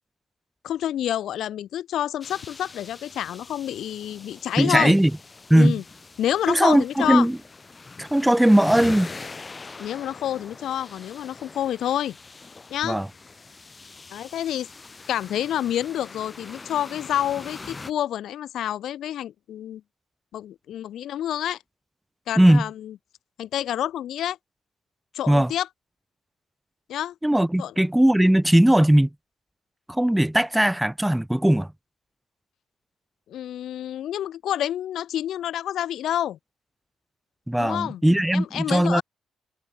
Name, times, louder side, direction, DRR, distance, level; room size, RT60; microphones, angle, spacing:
voice 1, 0.6-4.9 5.5-5.8 6.2-7.3 9.8-12.2 12.7-13.0 14.1-14.7 15.1-19.8 20.3-21.6 22.3-23.0 23.4-24.4 25.1-25.7 26.9-27.1 27.6-27.7 33.3-36.4 37.6-38.0 38.3-39.0, left 11 dB, 75° left, 0.9 m, -28 dB
sound 1, 2.2-17.9, left 4 dB, 25° left, 3.4 m, -42 dB
voice 2, 4.6-5.1 5.5-5.8 6.5-7.4 8.0-9.1 12.8-13.1 22.4-22.7 25.3-25.5 27.2-29.1 29.9-31.7 37.5-39.0, right 1 dB, 5° right, 0.7 m, -19 dB
cardioid pair, 90°, 0 cm